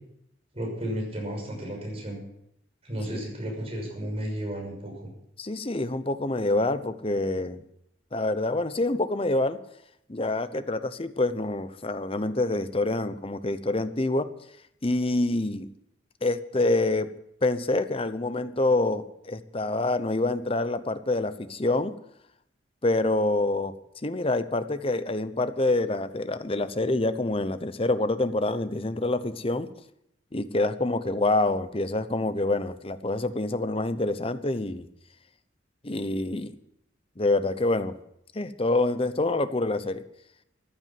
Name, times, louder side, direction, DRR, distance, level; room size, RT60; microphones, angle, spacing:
voice 1, 0.5-2.2 2.8-5.1, equal, 30° right, 0 dB, 6.4 m, -33 dB
voice 2, 5.4-7.6 8.1-9.6 10.1-14.3 14.8-15.7 16.2-17.1 17.4-21.9 22.8-23.7 24.0-29.7 30.3-34.9 35.8-36.5 37.2-37.9 38.3-40.0, left 2 dB, 30° left, 12 dB, 0.9 m, -26 dB
14.5 x 10.5 x 7.7 m, 0.78 s
head